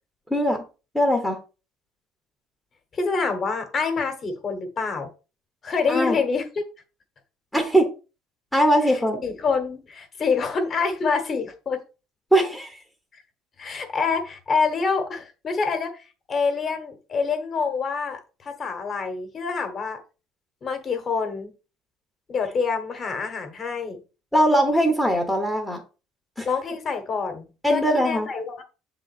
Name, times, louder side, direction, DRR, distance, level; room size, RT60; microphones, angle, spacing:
voice 1, 0.9-1.4 5.9-6.2 7.5-7.9 8.5-9.2 12.3-12.8 24.3-25.8 26.4-26.5 27.6-28.3, equal, 5° left, 0.9 m, -20 dB
voice 2, 2.9-5.1 5.6-6.7 8.8-11.8 13.1-13.2 13.6-20.0 20.6-21.5 22.3-24.0 26.4-28.6, left 5 dB, 30° left, 1.2 m, -26 dB
7.6 x 3.8 x 4.2 m
cardioid pair, 160°, 0 cm